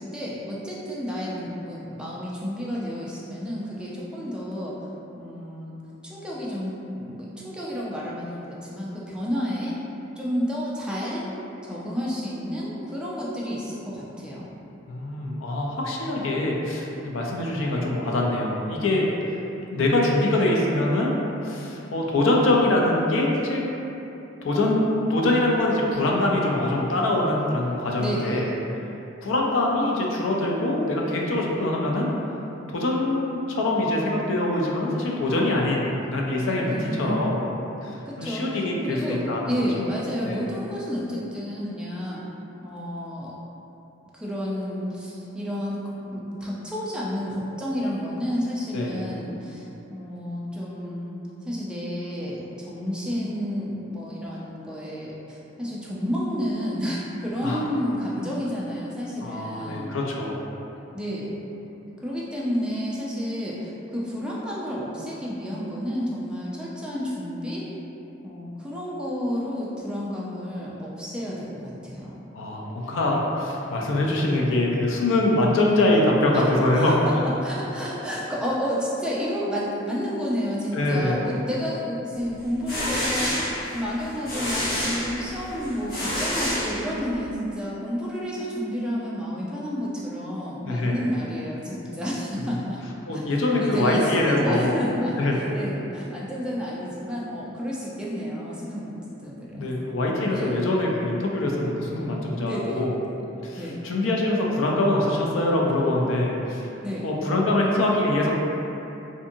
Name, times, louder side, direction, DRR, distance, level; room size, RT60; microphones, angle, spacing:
voice 1, 0.0-4.9 5.1-5.8 6.0-9.8 10.2-11.3 11.6-14.5 28.0-28.6 36.6-37.3 38.0-42.2 42.6-43.3 44.1-45.8 46.1-60.0 60.9-61.4 62.0-67.7 68.2-72.2 76.3-76.4 76.7-83.5 83.7-92.8 93.1-93.2 93.5-99.7 100.3-100.5 102.4-102.8 103.6-103.8 106.8-107.1, equal, 5° right, -6 dB, 0.3 m, -30 dB
voice 2, 14.9-19.0 19.7-21.2 21.4-23.7 24.4-28.5 29.2-32.1 32.7-37.4 37.8-39.9 40.2-40.4 48.7-49.0 57.4-57.6 59.2-60.4 72.3-77.2 80.7-81.2 90.6-91.0 93.1-94.8 95.2-95.4 99.5-102.9 103.4-106.7 107.0-108.3, left 1 dB, 85° left, -2 dB, 0.4 m, -24 dB
sound 1, 82.4-87.3, equal, 50° left, 0.9 m, -29 dB
2.5 x 2.5 x 2.6 m, 3.0 s
head